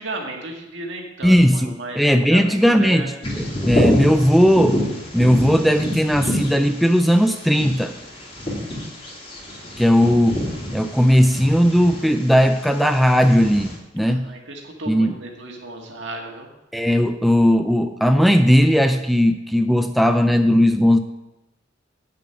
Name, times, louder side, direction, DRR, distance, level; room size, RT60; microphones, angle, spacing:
voice 1, 0.0-3.1 14.0-16.5, right 2 dB, 65° right, 1 dB, 1.8 m, -34 dB
voice 2, 1.2-4.8 5.1-7.9 9.8-10.4 10.7-14.3 14.9-15.2 16.7-21.0, equal, ahead, 6 dB, 0.3 m, -17 dB
Bird vocalization bird call bird song, 3.2-13.7, left 1 dB, 30° left, 2.8 m, -28 dB
8.5 x 6.8 x 5.8 m, 0.98 s
head